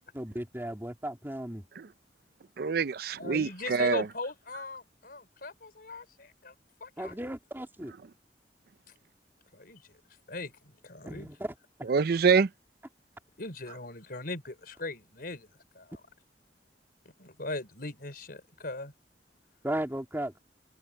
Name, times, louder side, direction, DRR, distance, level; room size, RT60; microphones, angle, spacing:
voice 1, 0.1-1.6 7.0-7.9 11.0-11.5 19.6-20.4, right 1 dB, 15° right, 2.6 m, -35 dB
voice 2, 2.6-4.1 11.8-12.5, right 5 dB, 60° right, 0.5 m, -25 dB
voice 3, 3.2-6.5 6.8-7.1 9.5-9.8 10.3-11.3 13.4-15.5 15.7-16.0 17.0-18.9, left 2 dB, 55° left, 5.0 m, -39 dB
open air
head